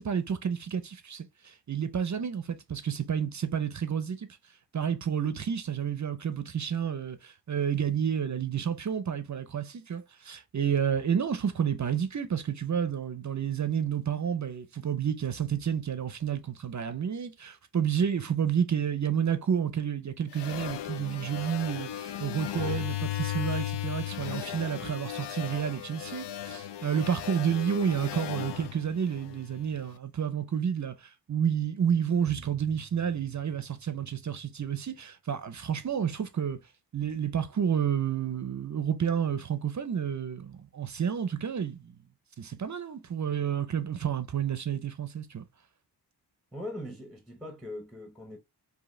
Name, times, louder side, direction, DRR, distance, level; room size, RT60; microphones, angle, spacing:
voice 1, 0.0-4.3 4.7-36.6 36.9-42.0 42.4-45.4, right 8 dB, 45° right, 0.5 m, -30 dB
sound 1, 20.3-29.8, left 12 dB, 80° left, 0.5 m, -36 dB
voice 2, 46.5-48.4, left 1 dB, ahead, 0.9 m, -40 dB
4.8 x 2.7 x 3.1 m
wide cardioid pair, 145°, 41 cm